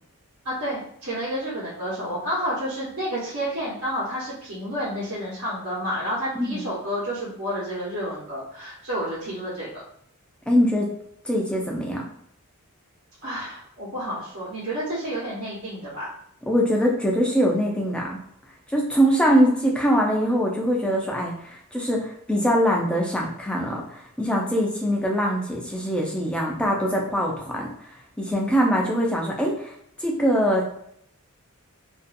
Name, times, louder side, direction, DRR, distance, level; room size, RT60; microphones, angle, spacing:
voice 1, 0.4-9.7 13.2-16.1, equal, 65° right, -8 dB, 1.0 m, -30 dB
voice 2, 10.5-10.9 11.2-12.0 16.5-18.2 18.7-27.7 28.2-29.7 30.0-30.8, equal, 5° left, -2 dB, 0.4 m, -23 dB
2.6 x 2.3 x 2.5 m, 0.70 s
head